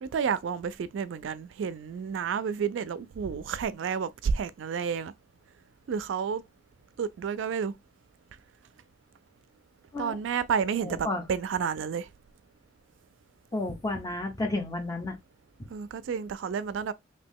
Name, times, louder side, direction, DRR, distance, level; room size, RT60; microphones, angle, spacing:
voice 1, 0.0-5.1 5.9-6.4 7.0-7.7 10.0-12.1 15.7-16.9, right 6 dB, 75° right, 0.3 m, -30 dB
voice 2, 10.8-11.2 13.5-15.2, left 2 dB, 20° left, 0.7 m, -32 dB
3.0 x 2.7 x 3.4 m
head